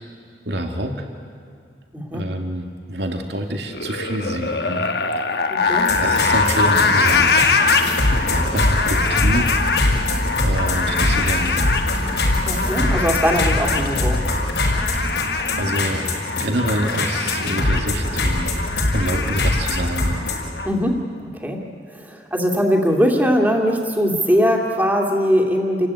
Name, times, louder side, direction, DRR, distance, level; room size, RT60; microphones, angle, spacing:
voice 1, 0.5-1.1 2.1-4.9 6.0-7.3 7.8-7.9 8.3-9.6 10.4-11.8 14.9-15.2 15.6-16.0 16.4-20.3, right 1 dB, 75° right, 4 dB, 2.2 m, -27 dB
voice 2, 1.9-2.2 5.5-5.9 12.4-14.2 20.6-25.9, equal, 10° right, 1 dB, 2.5 m, -21 dB
sound 1, 3.7-20.7, left 4 dB, 65° left, 1.3 m, -23 dB
sound 2, 5.7-20.4, left 1 dB, 85° left, 5.7 m, -23 dB
29.0 x 15.5 x 9.8 m, 2.2 s
head